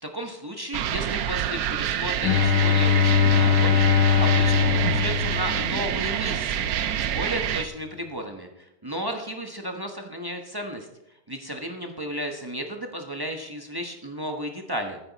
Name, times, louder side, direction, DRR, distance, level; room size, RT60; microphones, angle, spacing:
voice 1, 0.0-10.9 11.3-15.0, equal, 25° right, 3 dB, 0.5 m, -34 dB
sound 1, 0.7-7.7, right 10 dB, 80° right, 0.8 m, -27 dB
Bowed string instrument, 2.2-6.2, left 7 dB, 90° left, 1.5 m, -21 dB
13.5 x 9.8 x 4.1 m, 0.85 s
omnidirectional pair, 2.3 m